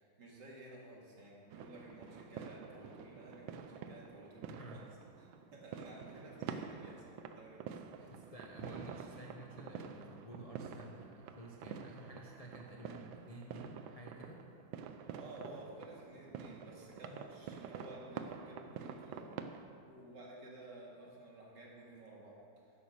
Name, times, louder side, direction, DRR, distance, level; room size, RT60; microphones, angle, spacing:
voice 1, 0.0-4.8 5.2-8.3 15.1-22.7, right 1 dB, 60° right, -3 dB, 2.7 m, -53 dB
sound 1, 1.5-19.6, right 7 dB, 80° right, 1.4 m, -48 dB
voice 2, 4.5-4.8 8.0-14.4, right 1 dB, 35° left, -2 dB, 0.6 m, -51 dB
11.0 x 8.1 x 6.6 m, 2.4 s
omnidirectional pair, 2.2 m